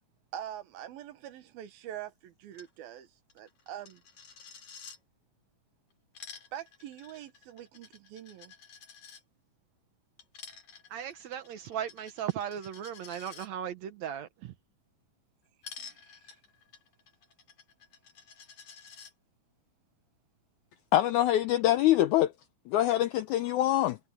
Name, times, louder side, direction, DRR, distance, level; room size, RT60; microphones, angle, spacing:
voice 1, 0.3-3.1 3.4-4.0 6.5-8.5 15.8-16.2, right 11 dB, 90° right, 3.3 m, -44 dB
Coin (dropping), 2.5-2.7 3.0-3.1 3.3-5.0 5.9-9.2 10.2-13.5 15.6-19.1, left 6 dB, 55° left, 4.9 m, -50 dB
voice 2, 10.9-14.5, right 10 dB, 65° right, 1.9 m, -37 dB
voice 3, 20.9-22.3 22.7-24.0, left 13 dB, 80° left, 1.7 m, -24 dB
omnidirectional pair, 4.2 m